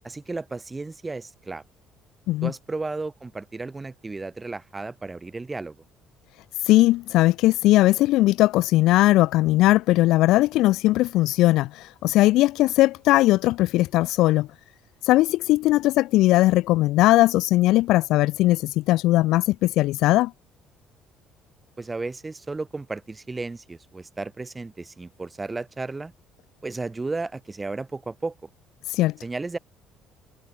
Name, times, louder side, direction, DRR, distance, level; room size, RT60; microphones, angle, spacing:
voice 1, 0.0-1.6 2.4-5.8 21.8-26.1 26.6-28.3 29.2-29.6, right 3 dB, 15° right, 1.1 m, -33 dB
voice 2, 6.7-14.5 15.0-20.3 28.9-29.1, left 17 dB, 75° left, 0.3 m, -19 dB
cardioid pair, 150°, 0 cm